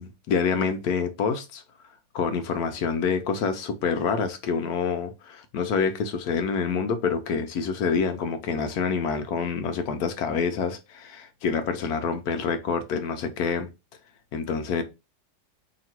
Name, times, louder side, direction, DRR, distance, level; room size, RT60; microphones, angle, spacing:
voice 1, 0.0-1.6 2.1-13.7 14.3-14.8, left 5 dB, 70° left, 1.0 m, -27 dB
2.9 x 2.9 x 4.3 m
omnidirectional pair, 1.9 m